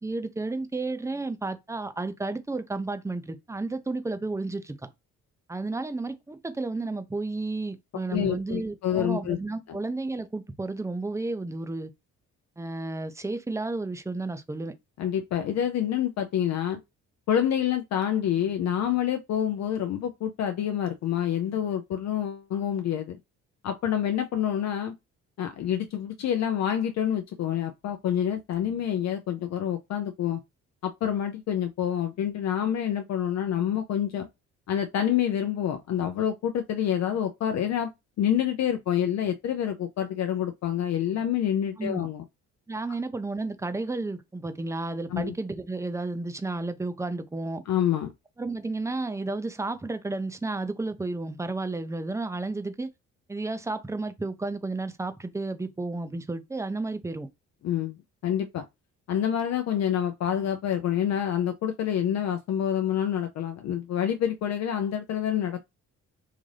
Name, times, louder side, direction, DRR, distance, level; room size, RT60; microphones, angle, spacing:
voice 1, 0.0-4.8 5.5-11.9 12.6-14.8 41.8-42.1 42.7-47.6 48.4-52.9 53.3-57.3, right 2 dB, 10° right, 0.5 m, -32 dB
voice 2, 8.1-9.4 9.7-9.8 15.0-16.8 17.3-23.2 23.6-24.9 25.4-30.4 30.8-34.3 34.7-37.9 38.2-42.2 45.1-45.3 47.7-48.1 57.6-58.0 58.2-58.7 59.1-65.6, left 10 dB, 60° left, 0.5 m, -27 dB
3.7 x 2.6 x 3.2 m
cardioid pair, 90°, 30 cm